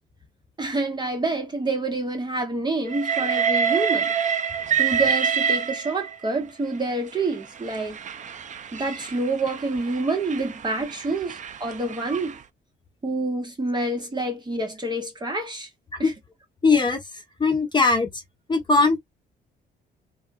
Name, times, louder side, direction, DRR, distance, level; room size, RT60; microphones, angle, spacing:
voice 1, 0.6-4.1 4.8-8.0 8.7-12.4 13.0-15.7 16.0-16.1, right 2 dB, 25° right, 1.1 m, -27 dB
Train, 2.9-6.3 7.1-12.4, right 7 dB, 40° right, 0.4 m, -27 dB
voice 2, 16.6-17.0 17.4-18.1 18.5-19.0, left 4 dB, 25° left, 1.1 m, -19 dB
3.5 x 2.3 x 2.5 m
cardioid pair, 100°, 19 cm